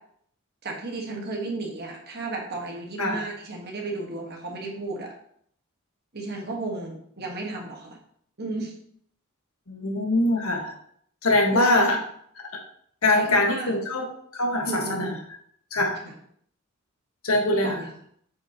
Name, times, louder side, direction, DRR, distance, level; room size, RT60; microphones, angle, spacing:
voice 1, 0.6-5.1 6.1-8.0 8.4-8.7 11.5-12.0 13.1-13.7 14.6-15.2 16.0-16.1 17.6-17.9, right 2 dB, 50° right, 0 dB, 1.4 m, -33 dB
voice 2, 3.0-3.3 9.7-10.7 11.2-12.0 12.3-12.4 13.0-15.1 15.7-16.0 17.2-17.8, left 2 dB, 80° left, 1 dB, 1.5 m, -23 dB
8.0 x 5.1 x 2.9 m, 0.65 s
head